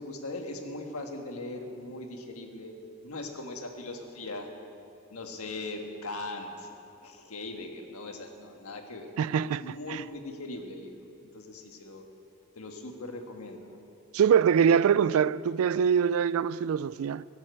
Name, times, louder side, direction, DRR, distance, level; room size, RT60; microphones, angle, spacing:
voice 1, 0.0-2.8 3.0-4.5 5.1-6.7 7.0-9.1 9.6-11.0 11.3-12.0 12.5-13.8, left 2 dB, 85° left, 1.5 m, -39 dB
voice 2, 9.2-10.0 14.1-17.2, right 7 dB, 75° right, 0.3 m, -24 dB
18.0 x 7.6 x 7.8 m
head